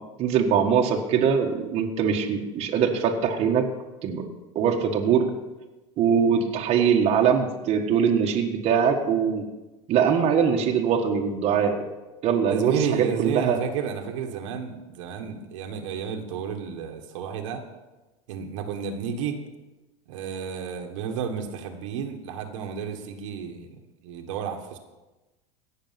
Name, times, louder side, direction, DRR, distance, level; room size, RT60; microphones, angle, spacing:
voice 1, 0.2-3.7 4.0-4.2 4.5-5.3 6.0-9.5 9.9-11.7 12.2-13.6, right 7 dB, 40° right, 2 dB, 1.5 m, -22 dB
voice 2, 12.5-17.6 18.3-19.4 20.1-24.8, right 7 dB, 75° right, 4 dB, 1.6 m, -31 dB
17.0 x 6.7 x 5.8 m, 1.1 s
supercardioid pair, 130°, 16 cm